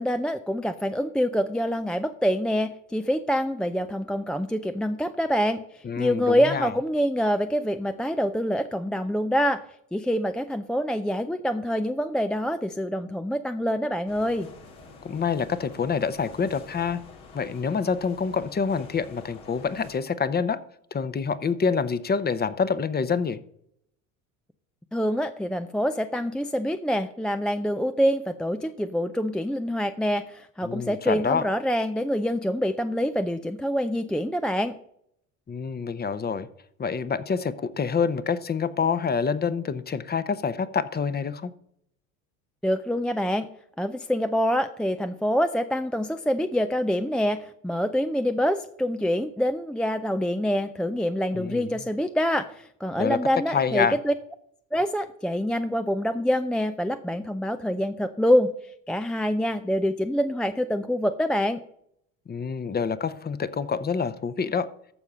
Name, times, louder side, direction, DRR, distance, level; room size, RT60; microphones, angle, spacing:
voice 1, 0.0-9.6 9.9-14.5 24.9-34.7 42.6-43.5 43.8-54.1 54.7-58.5 58.9-61.6, equal, ahead, 9 dB, 0.4 m, -26 dB
voice 2, 5.8-6.7 15.0-17.0 17.3-20.6 20.9-23.4 30.6-31.5 35.5-36.5 36.8-41.5 51.3-51.7 53.0-53.2 53.5-54.0 62.3-64.7, left 5 dB, 25° left, 14 dB, 0.8 m, -27 dB
sound 1, 14.1-20.0, left 3 dB, 80° left, 2.5 m, -47 dB
14.0 x 4.8 x 5.5 m, 0.71 s
hypercardioid pair, 75°, 40 cm